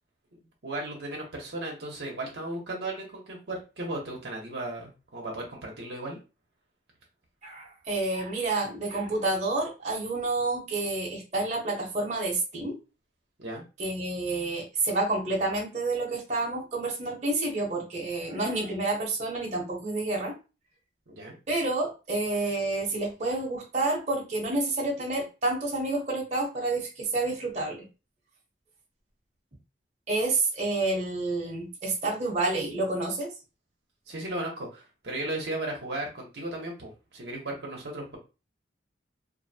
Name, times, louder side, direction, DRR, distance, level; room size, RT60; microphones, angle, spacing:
voice 1, 0.6-6.2 13.4-13.6 21.1-21.4 34.1-38.2, right 1 dB, 65° right, -1 dB, 0.9 m, -35 dB
voice 2, 7.4-12.8 13.8-20.3 21.5-27.9 30.1-33.3, right 2 dB, 40° right, -2 dB, 0.9 m, -29 dB
2.6 x 2.1 x 2.7 m, 0.30 s
head